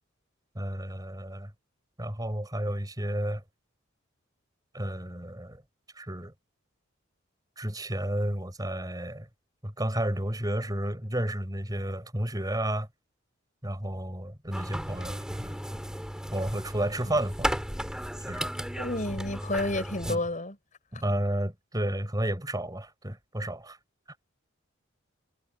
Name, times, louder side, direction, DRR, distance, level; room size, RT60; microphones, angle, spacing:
voice 1, 0.5-1.5 2.0-3.4 4.7-5.6 5.9-6.3 7.6-9.3 9.6-12.9 13.6-15.6 16.3-17.6 18.3-18.5 20.1-20.2 20.9-23.8 24.1-24.2, right 1 dB, 20° right, 4.8 m, -31 dB
sound 1, 14.5-20.2, equal, 5° right, 2.8 m, -35 dB
voice 2, 18.8-20.6, left 2 dB, 40° left, 6.4 m, -30 dB
head